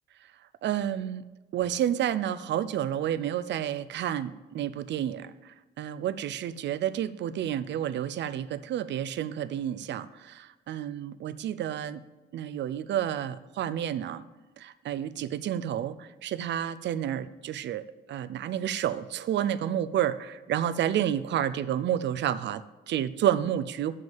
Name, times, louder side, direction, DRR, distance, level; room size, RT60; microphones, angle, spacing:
voice 1, 0.6-1.2 1.5-12.0 12.3-14.2 14.6-23.9, right 10 dB, 65° right, 15 dB, 0.5 m, -30 dB
7.0 x 6.5 x 7.3 m, 1.2 s
cardioid pair, 90°, 20 cm